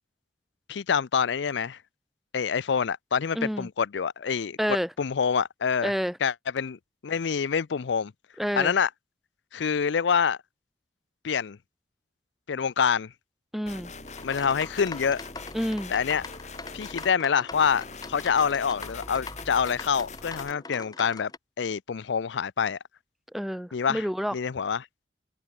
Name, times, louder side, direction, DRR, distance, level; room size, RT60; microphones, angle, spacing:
voice 1, 0.7-1.8 2.3-4.6 5.0-5.9 6.2-8.1 8.6-8.9 9.5-10.4 11.2-11.6 12.5-13.1 14.2-15.2 15.9-16.2 16.7-21.3 21.6-22.8 23.7-24.0 24.3-24.9, left 6 dB, 80° left, 0.5 m, -26 dB
voice 2, 3.3-3.7 4.6-4.9 5.8-6.2 8.4-8.7 13.5-13.9 15.5-15.9 23.3-24.3, equal, ahead, 0.8 m, -28 dB
sound 1, 13.7-17.1 17.5-20.5, left 3 dB, 40° left, 4.4 m, -43 dB
sound 2, 14.0-21.4, left 3 dB, 20° left, 1.2 m, -42 dB
head